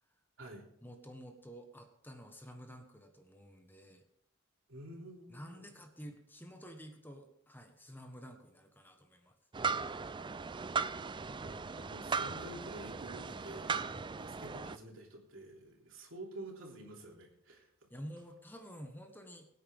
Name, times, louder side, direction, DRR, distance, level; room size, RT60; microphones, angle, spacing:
voice 1, 0.8-4.0 5.3-9.3 13.9-14.1 17.9-19.5, equal, 10° left, 5 dB, 1.3 m, -50 dB
voice 2, 4.7-5.7 11.3-17.9, right 1 dB, 70° right, -1 dB, 3.2 m, -49 dB
sound 1, 9.5-14.8, right 5 dB, 25° right, 0.4 m, -38 dB
21.5 x 9.3 x 3.6 m, 0.76 s
head